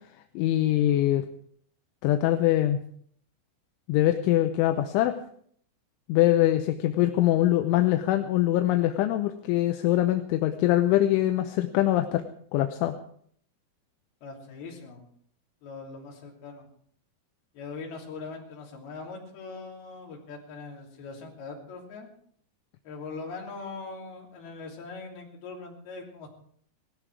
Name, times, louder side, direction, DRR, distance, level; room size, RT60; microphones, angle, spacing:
voice 1, 0.4-1.2 2.0-2.8 3.9-5.2 6.1-12.2 12.5-12.9, left 14 dB, 80° left, 7 dB, 3.2 m, -23 dB
voice 2, 14.2-15.1 15.6-16.7 17.5-22.1 22.8-26.3, left 4 dB, 55° left, 0 dB, 4.8 m, -41 dB
18.5 x 14.0 x 4.7 m, 0.62 s
omnidirectional pair, 5.6 m